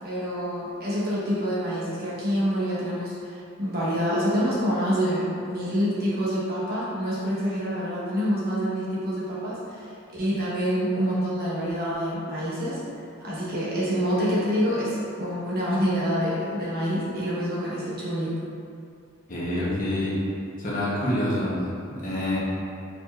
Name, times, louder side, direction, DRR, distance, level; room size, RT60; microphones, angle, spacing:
voice 1, 0.0-12.8 13.2-18.4, equal, 50° right, -8 dB, 1.2 m, -27 dB
voice 2, 19.3-20.2 20.6-22.4, left 1 dB, 40° left, -7 dB, 1.0 m, -27 dB
4.6 x 4.1 x 2.5 m, 2.5 s
head